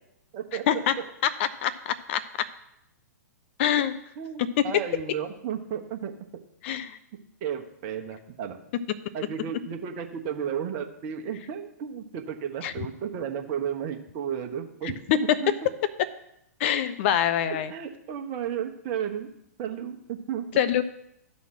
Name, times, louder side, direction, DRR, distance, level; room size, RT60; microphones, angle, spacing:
voice 1, 0.3-1.1 4.2-6.1 7.4-8.6 9.1-15.5 17.5-19.3 19.6-20.5, right 8 dB, 35° right, 4 dB, 1.2 m, -33 dB
voice 2, 1.2-2.5 3.6-3.9 6.6-7.0 12.6-12.7 15.1-15.2 15.5-15.6 16.6-17.7 20.6-20.8, left 10 dB, 45° left, 13 dB, 0.6 m, -25 dB
12.5 x 4.2 x 5.9 m, 0.80 s
figure-of-eight pair, 110°, 9 cm